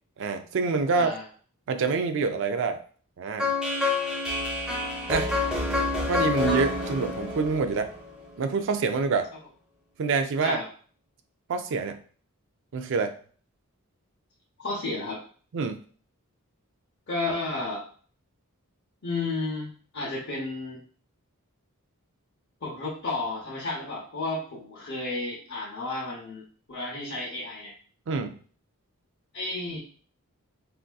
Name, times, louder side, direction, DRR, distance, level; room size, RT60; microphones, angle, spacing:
voice 1, 0.2-1.1 1.7-2.8 3.2-3.5 5.1-5.3 6.1-7.9 8.4-9.3 10.0-10.6 11.5-12.0 12.7-13.1 15.5-15.8 28.1-28.3, right 4 dB, 55° right, 7 dB, 0.4 m, -26 dB
voice 2, 0.9-1.2 10.4-10.7 14.6-15.2 17.1-17.8 19.0-20.8 22.6-27.7 29.3-29.8, left 2 dB, 50° left, -7 dB, 0.8 m, -32 dB
sound 1, 3.4-8.4, left 3 dB, 5° right, 0.7 m, -28 dB
3.4 x 2.7 x 2.2 m, 0.43 s
head